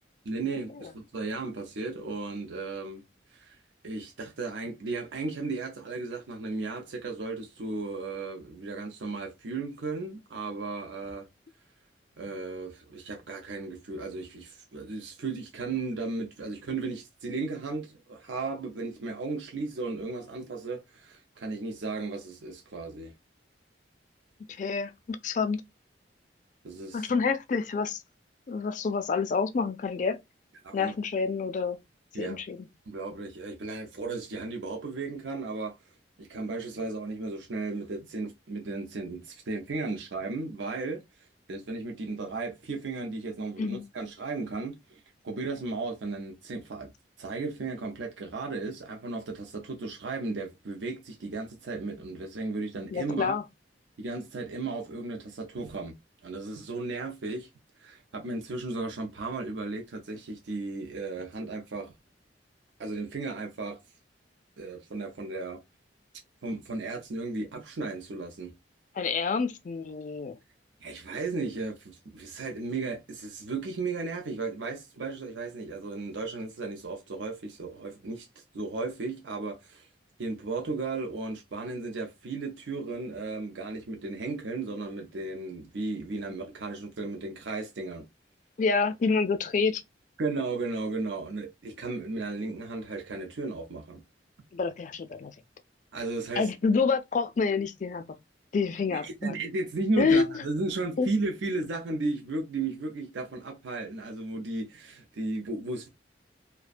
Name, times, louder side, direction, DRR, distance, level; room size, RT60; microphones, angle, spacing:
voice 1, 0.2-3.0 3.3-3.6 3.8-11.3 12.2-23.1 26.6-27.1 30.6-30.9 32.1-32.4 32.9-35.8 36.2-46.9 47.2-53.4 54.0-56.0 56.2-57.5 57.8-61.9 62.8-63.8 64.6-65.6 66.4-68.5 70.8-78.3 78.5-79.9 80.2-88.1 90.2-94.0 95.9-96.5 98.9-105.9, right 3 dB, 80° right, 0.6 m, -35 dB
voice 2, 24.6-25.6 26.9-28.0 28.5-30.2 30.7-31.8 32.2-32.6 43.6-43.8 52.9-53.4 69.0-70.4 88.6-89.8 94.5-95.3 96.4-98.1 98.5-99.3 100.0-100.2 101.0-101.1, left 5 dB, 45° left, 0.4 m, -27 dB
2.4 x 2.1 x 2.4 m
head